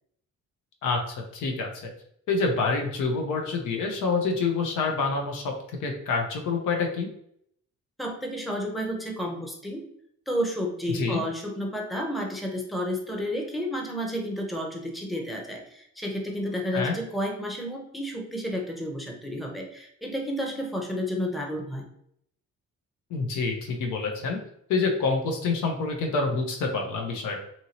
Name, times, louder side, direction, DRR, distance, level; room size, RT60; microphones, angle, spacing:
voice 1, 1.3-1.9 2.3-5.5 5.8-7.1 10.9-11.2 16.7-16.9 23.1-24.4 24.7-27.4, left 4 dB, 85° left, 3 dB, 0.7 m, -27 dB
voice 2, 8.0-9.8 10.3-21.8, equal, ahead, 0 dB, 0.6 m, -31 dB
2.8 x 2.7 x 2.8 m, 0.71 s
cardioid pair, 90°, 30 cm